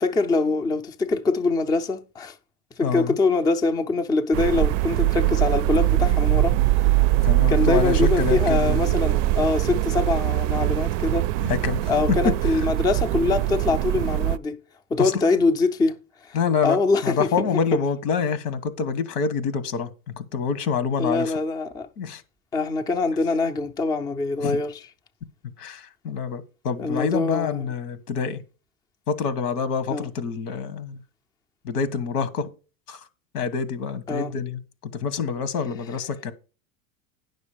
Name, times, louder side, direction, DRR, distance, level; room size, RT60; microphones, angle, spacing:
voice 1, 0.0-2.4 2.8-6.6 7.5-11.3 11.9-14.6 14.9-16.4 16.6-17.3 21.0-21.9 22.5-24.8 26.8-27.6 29.9-30.1 34.1-34.3, left 3 dB, 10° left, 0.4 m, -24 dB
voice 2, 2.8-3.2 7.2-8.8 11.4-12.2 15.0-15.2 16.3-21.3 22.0-22.2 24.4-24.6 25.6-28.4 29.1-31.0 31.6-32.5 32.9-33.0 33.3-36.3, left 6 dB, 90° left, 1.4 m, -26 dB
sound 1, 4.3-14.4, right 15 dB, 60° right, 0.5 m, -22 dB
9.7 x 6.4 x 5.0 m
supercardioid pair, 135°, 45 cm